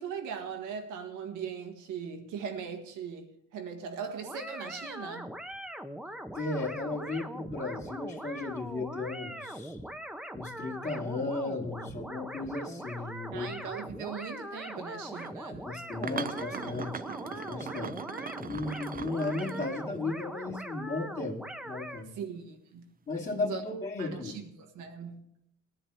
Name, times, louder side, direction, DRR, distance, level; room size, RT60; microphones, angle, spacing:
voice 1, 0.0-5.3 13.3-15.7 22.1-22.9 23.4-23.6 24.0-25.3, right 6 dB, 90° right, 1.6 m, -40 dB
sound 1, 4.2-22.0, equal, 5° right, 0.8 m, -41 dB
voice 2, 6.3-9.8 10.3-13.5 15.6-18.0 18.4-21.4 21.6-22.1 23.1-24.4, left 3 dB, 30° left, 2.4 m, -35 dB
sound 2, 15.0-15.3 15.9-20.2 23.3-23.5, right 6 dB, 30° right, 0.5 m, -40 dB
19.0 x 10.0 x 3.4 m
cardioid pair, 90°, 30 cm